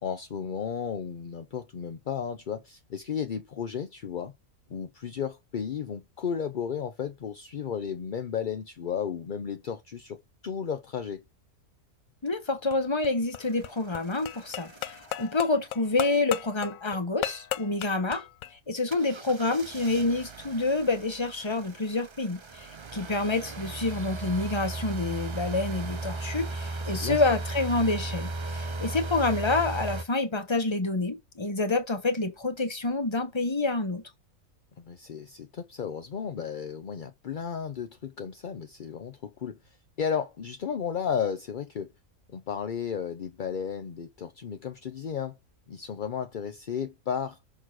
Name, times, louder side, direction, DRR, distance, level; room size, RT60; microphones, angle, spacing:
voice 1, 0.0-4.3 4.7-11.2 26.8-27.2 34.8-41.9 42.3-45.4 45.7-47.4, left 7 dB, 50° left, 0.6 m, -34 dB
voice 2, 12.2-18.2 18.7-34.0, left 3 dB, 20° left, 1.2 m, -28 dB
sound 1, 12.5-18.5, left 13 dB, 75° left, 1.0 m, -37 dB
sound 2, 13.4-15.4 18.9-30.0, right 2 dB, 40° right, 0.4 m, -37 dB
6.4 x 3.9 x 6.1 m
omnidirectional pair, 1.5 m